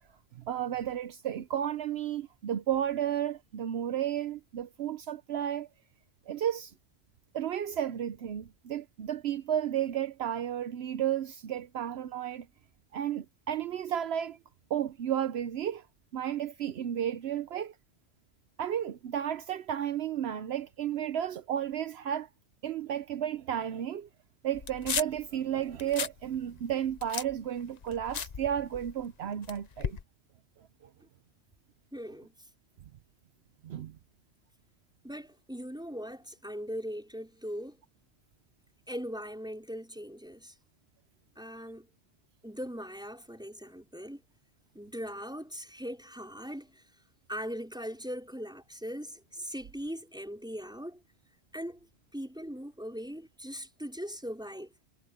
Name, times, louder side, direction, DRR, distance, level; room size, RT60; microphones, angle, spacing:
voice 1, 0.5-5.7 6.3-6.7 7.3-12.5 12.9-14.4 14.7-15.9 16.1-17.7 18.6-22.3 22.6-24.1 24.4-30.0 33.6-33.9, right 10 dB, 75° right, 0.9 m, -33 dB
sound 1, 24.5-25.3 25.7-26.2 26.5-29.1 29.4-30.0, left 7 dB, 45° left, 0.7 m, -36 dB
voice 2, 31.9-32.3 35.0-37.8 38.9-40.5 41.4-41.9 42.4-44.2 44.8-46.8 47.3-51.0 51.5-51.8 52.1-54.7, equal, 5° right, 5.2 m, -40 dB
omnidirectional pair, 1.1 m